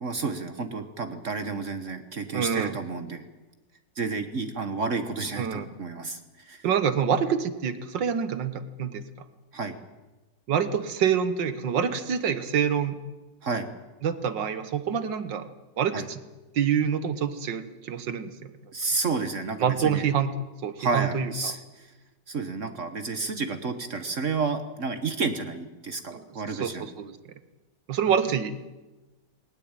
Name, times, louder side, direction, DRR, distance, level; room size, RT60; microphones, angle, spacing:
voice 1, 0.0-3.3 4.0-6.7 9.5-9.8 13.4-13.7 15.9-16.1 18.7-20.1 20.8-21.9 22.3-26.9, right 4 dB, 45° right, 9 dB, 1.5 m, -31 dB
voice 2, 2.3-2.7 5.4-5.7 6.6-9.0 10.5-13.0 14.0-15.5 15.8-16.2 16.5-18.5 19.6-20.3 20.6-21.5 26.1-27.2 27.9-28.6, right 7 dB, 85° right, 12 dB, 2.0 m, -26 dB
20.0 x 19.0 x 8.9 m, 1.1 s
omnidirectional pair, 1.9 m